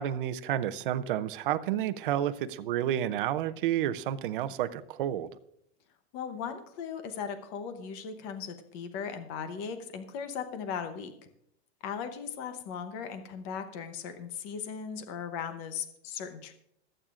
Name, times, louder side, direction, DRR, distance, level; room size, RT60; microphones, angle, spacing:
voice 1, 0.0-5.3, right 11 dB, 50° right, 13 dB, 0.6 m, -30 dB
voice 2, 6.1-11.1 11.8-16.5, left 7 dB, 25° left, 8 dB, 0.8 m, -38 dB
26.0 x 8.9 x 2.5 m, 0.73 s
supercardioid pair, 175°, 34 cm